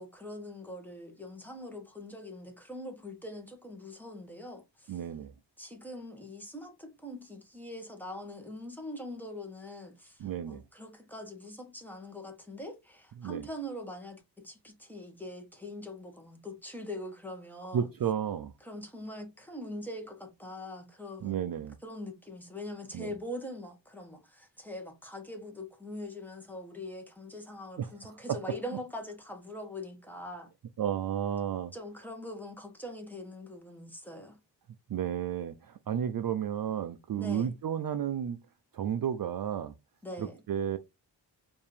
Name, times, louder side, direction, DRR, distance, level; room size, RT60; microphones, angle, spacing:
voice 1, 0.0-5.0 5.6-17.9 18.6-21.4 21.8-30.5 31.7-34.4 37.2-37.6 40.0-40.4, left 1 dB, 5° left, 1.2 m, -43 dB
voice 2, 4.9-5.3 10.2-10.6 13.2-13.5 17.7-18.5 21.2-21.8 22.9-23.1 27.8-28.6 30.8-31.7 34.9-38.4 38.7-39.7 40.2-40.8, right 9 dB, 55° right, 0.4 m, -32 dB
4.6 x 2.7 x 3.3 m
wide cardioid pair, 90°, 43 cm